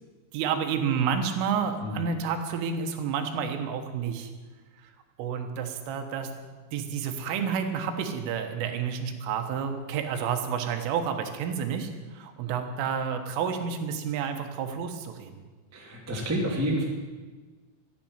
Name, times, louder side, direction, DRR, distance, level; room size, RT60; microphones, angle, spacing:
voice 1, 0.3-4.3 5.2-6.3 6.7-15.4, right 7 dB, 75° right, 5 dB, 3.8 m, -30 dB
voice 2, 15.7-16.8, equal, 20° right, -2 dB, 0.4 m, -29 dB
13.5 x 10.5 x 8.8 m, 1.4 s
omnidirectional pair, 5.9 m